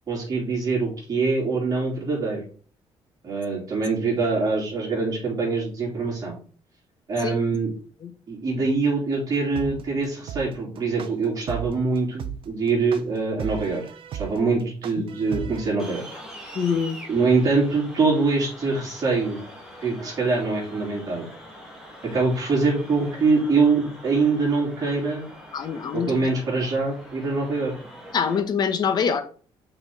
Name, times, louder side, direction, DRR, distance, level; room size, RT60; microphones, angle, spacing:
voice 1, 0.1-2.4 3.2-6.3 7.1-7.7 8.3-13.8 14.1-16.0 17.1-19.4 19.8-21.3 22.1-25.2 25.9-27.8, right 4 dB, 35° right, 3.4 m, -24 dB
sound 1, 9.6-15.7, right 9 dB, 55° right, 0.7 m, -34 dB
sound 2, 15.8-28.4, equal, 5° right, 2.0 m, -43 dB
voice 2, 16.5-17.0 25.5-26.2 28.1-29.2, left 6 dB, 40° left, 0.9 m, -24 dB
5.9 x 4.6 x 4.0 m
cardioid pair, 160°, 11 cm